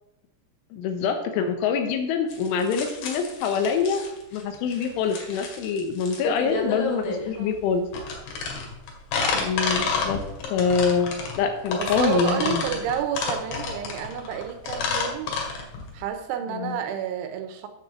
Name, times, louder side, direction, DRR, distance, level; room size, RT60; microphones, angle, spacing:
voice 1, 0.7-4.0 4.3-7.9 9.3-10.2 10.5-12.7 16.5-16.8, left 6 dB, 85° left, 6 dB, 3.7 m, -25 dB
sound 1, 2.3-16.1, left 4 dB, 65° left, 3.8 m, -30 dB
voice 2, 11.7-15.3 15.9-17.7, right 9 dB, 85° right, 7 dB, 3.5 m, -30 dB
9.1 x 6.4 x 7.2 m, 0.85 s
omnidirectional pair, 5.5 m